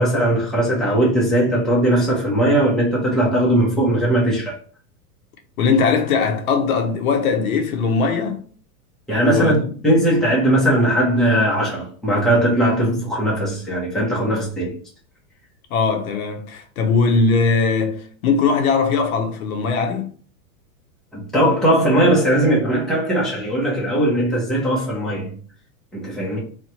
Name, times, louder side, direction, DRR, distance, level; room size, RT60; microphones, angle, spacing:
voice 1, 0.0-4.6 9.1-14.8 21.1-25.4 25.9-26.4, right 1 dB, ahead, 0.8 m, -19 dB
voice 2, 5.6-8.4 9.2-9.6 15.7-20.1, left 5 dB, 70° left, 1.0 m, -20 dB
3.1 x 2.4 x 4.2 m
supercardioid pair, 160°, 44 cm